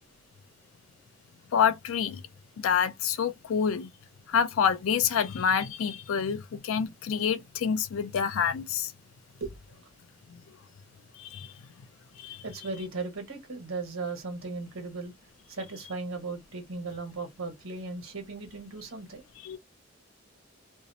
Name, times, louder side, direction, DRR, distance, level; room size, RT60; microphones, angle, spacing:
voice 1, 1.5-2.2 2.6-3.9 4.3-8.9 11.2-11.5 12.2-12.4 19.4-19.6, left 7 dB, 80° left, 0.4 m, -27 dB
voice 2, 12.4-15.1 15.5-19.2, right 3 dB, 90° right, 1.1 m, -37 dB
2.6 x 2.0 x 2.6 m
head